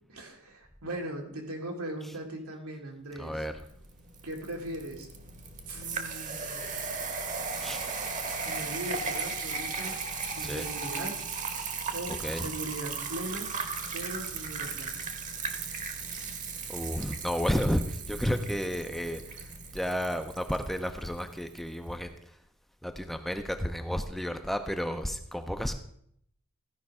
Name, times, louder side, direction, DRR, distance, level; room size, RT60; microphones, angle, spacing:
voice 1, 0.1-3.3 4.2-5.1 5.7-6.7 8.4-10.0 10.3-11.2 11.9-13.5 13.9-14.9, right 1 dB, 85° right, 1 dB, 2.1 m, -39 dB
voice 2, 3.2-3.5 7.6-7.8 10.4-10.7 12.2-12.5 16.7-22.4 22.8-25.7, equal, ahead, 6 dB, 0.5 m, -32 dB
sound 1, 3.6-21.7, right 4 dB, 35° right, 1.0 m, -36 dB
14.5 x 5.3 x 4.8 m, 0.71 s
head